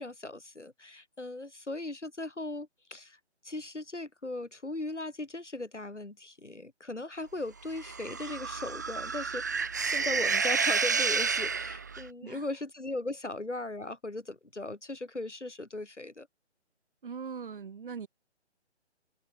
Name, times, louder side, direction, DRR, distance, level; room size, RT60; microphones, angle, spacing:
voice 1, 0.0-3.2 3.4-16.3, left 2 dB, 90° left, 2.3 m, -38 dB
sound 1, 7.7-12.0, right 5 dB, 15° right, 0.6 m, -30 dB
voice 2, 17.0-18.1, right 6 dB, 50° right, 6.8 m, -40 dB
figure-of-eight pair, 145°, 34 cm